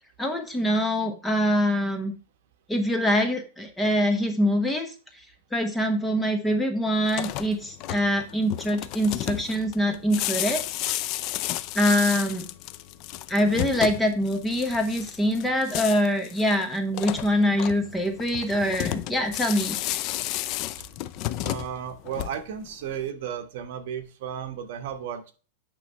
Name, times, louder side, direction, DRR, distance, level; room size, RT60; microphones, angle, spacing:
voice 1, 0.2-2.1 2.7-4.9 5.5-10.6 11.7-12.5 13.3-19.8, equal, 5° left, 4 dB, 1.0 m, -24 dB
sound 1, 7.0-22.7, left 14 dB, 35° left, 0.4 m, -32 dB
voice 2, 21.4-25.3, right 8 dB, 60° right, 7 dB, 1.1 m, -34 dB
9.0 x 3.1 x 5.4 m, 0.35 s
supercardioid pair, 160°, 0 cm